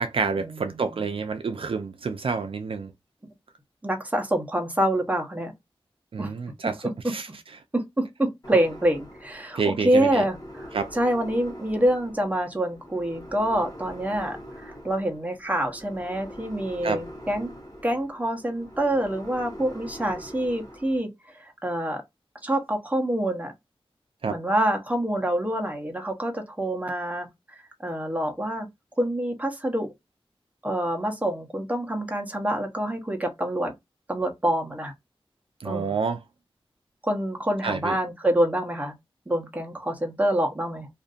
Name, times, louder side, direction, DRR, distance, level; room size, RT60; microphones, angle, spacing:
voice 1, 0.0-2.9 6.1-7.3 9.5-10.2 10.7-10.9 16.8-17.0 24.2-24.4 35.6-36.2 37.6-38.0, right 5 dB, 65° right, 0.4 m, -28 dB
voice 2, 3.8-5.5 6.2-6.3 7.7-14.4 14.6-17.5 17.8-21.1 21.6-22.0 22.4-23.5 24.3-27.3 27.5-28.7 29.0-29.9 30.6-33.7 34.1-34.9 35.6-35.9 37.0-38.9 39.3-40.9, right 1 dB, 15° right, 0.8 m, -26 dB
sound 1, 8.4-21.0, equal, 40° left, 1.0 m, -43 dB
2.6 x 2.5 x 2.4 m
wide cardioid pair, 85°, 10 cm